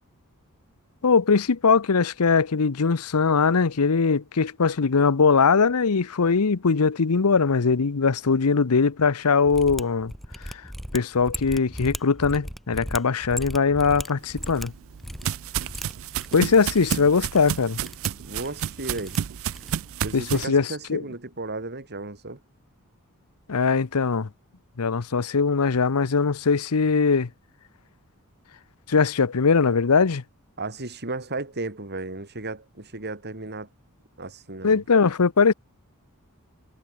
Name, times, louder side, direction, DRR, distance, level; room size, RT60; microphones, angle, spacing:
voice 1, 1.0-10.1 10.4-10.6 10.9-14.7 16.3-17.8 20.1-21.0 23.5-24.3 24.8-27.3 28.9-30.2 34.6-35.5, left 5 dB, 80° left, 0.8 m, -21 dB
Mechanisms, 9.4-19.9, equal, ahead, 1.3 m, -38 dB
sound 1, 14.3-20.5, right 9 dB, 65° right, 0.4 m, -31 dB
voice 2, 18.2-19.2 20.0-22.4 30.6-33.7 34.2-34.8, right 2 dB, 50° right, 3.9 m, -34 dB
head